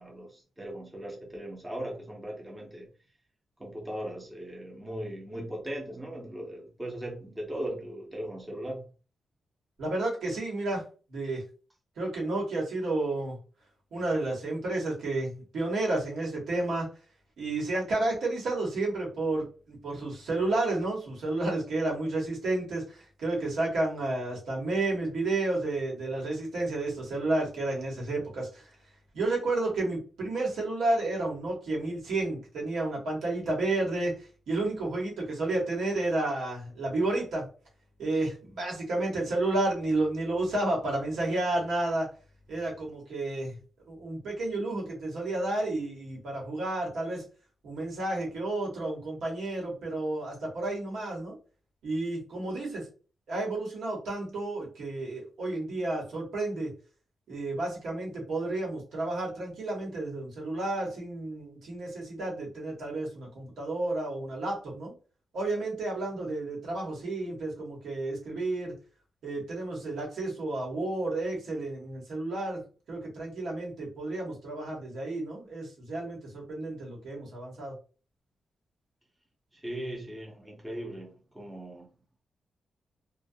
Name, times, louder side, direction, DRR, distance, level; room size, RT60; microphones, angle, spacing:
voice 1, 0.0-2.9 3.6-8.9 79.5-81.9, right 1 dB, 10° right, -1 dB, 0.6 m, -38 dB
voice 2, 9.8-10.8 11.1-11.4 12.0-13.4 13.9-16.9 17.4-28.6 29.1-37.5 38.0-42.1 42.5-43.6 43.9-47.2 47.6-51.4 51.8-52.8 53.3-56.7 57.3-64.9 65.3-68.7 69.2-72.6 72.9-77.7, right 2 dB, 90° right, -3 dB, 1.1 m, -31 dB
2.3 x 2.1 x 2.6 m, 0.37 s
wide cardioid pair, 175°, 0 cm